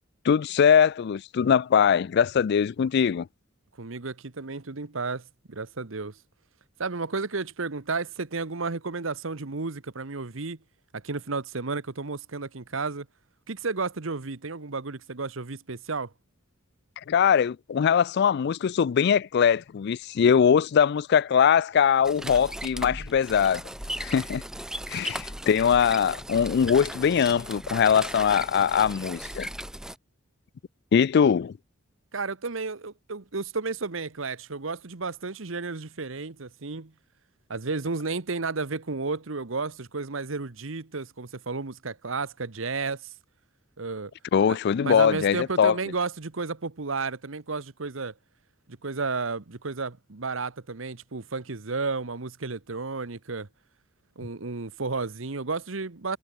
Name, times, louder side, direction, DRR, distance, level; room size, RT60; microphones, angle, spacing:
voice 1, 0.2-3.3 17.1-23.6 24.0-24.4 24.9-29.5 30.9-31.5 44.3-45.8, left 7 dB, 55° left, 0.3 m, -22 dB
voice 2, 3.8-6.2 6.8-10.6 10.9-13.1 13.5-16.1 32.1-36.9 37.5-43.1 43.8-44.1 44.5-44.6 44.8-48.1 48.7-53.5 54.2-56.2, right 4 dB, 75° right, 1.2 m, -32 dB
sound 1, 22.0-30.0, right 1 dB, 5° right, 0.5 m, -37 dB
head